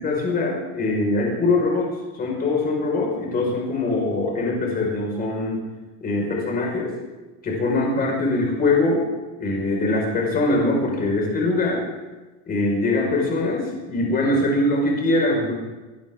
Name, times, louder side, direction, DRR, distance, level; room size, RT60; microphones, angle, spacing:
voice 1, 0.0-5.6 6.0-7.0 7.4-9.0 9.4-11.8 12.5-15.5, left 2 dB, 25° left, -2 dB, 5.2 m, -22 dB
21.0 x 17.0 x 3.8 m, 1.2 s
supercardioid pair, 160°, 38 cm